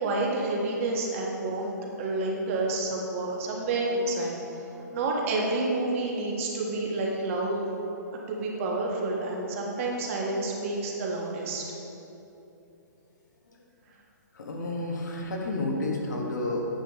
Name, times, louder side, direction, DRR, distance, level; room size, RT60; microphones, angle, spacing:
voice 1, 0.0-4.4 4.9-7.6 8.3-11.6, right 2 dB, 45° right, -1 dB, 1.5 m, -29 dB
voice 2, 14.3-16.7, left 2 dB, 70° left, 0 dB, 1.5 m, -31 dB
9.0 x 7.0 x 3.2 m, 2.9 s
hypercardioid pair, 130°, 10 cm